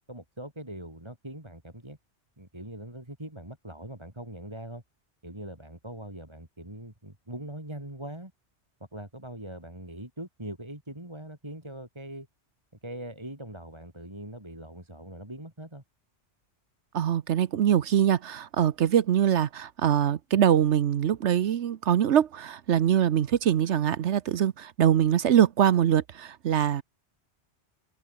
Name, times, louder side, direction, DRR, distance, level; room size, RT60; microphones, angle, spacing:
voice 1, 0.1-2.0 2.4-4.8 5.2-8.3 8.9-12.3 12.8-15.8, right 1 dB, 25° right, 4.0 m, -41 dB
voice 2, 16.9-26.8, right 9 dB, 75° right, 1.1 m, -23 dB
omnidirectional pair, 1.2 m